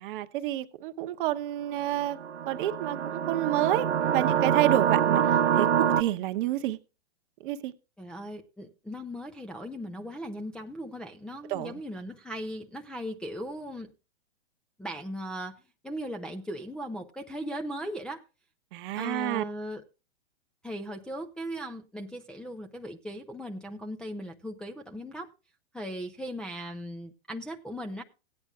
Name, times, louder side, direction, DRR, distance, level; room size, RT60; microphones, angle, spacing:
voice 1, 0.0-2.2 2.5-5.2 5.5-6.8 7.4-7.7 11.5-11.7 18.7-19.4, right 13 dB, 50° right, 0.9 m, -29 dB
sound 1, 2.0-6.0, right 9 dB, 80° right, 1.1 m, -25 dB
voice 2, 8.0-13.9 14.8-18.2 18.9-19.8 20.6-25.3 25.7-28.0, equal, 5° left, 0.5 m, -38 dB
17.0 x 9.7 x 2.4 m
hypercardioid pair, 120°, 34 cm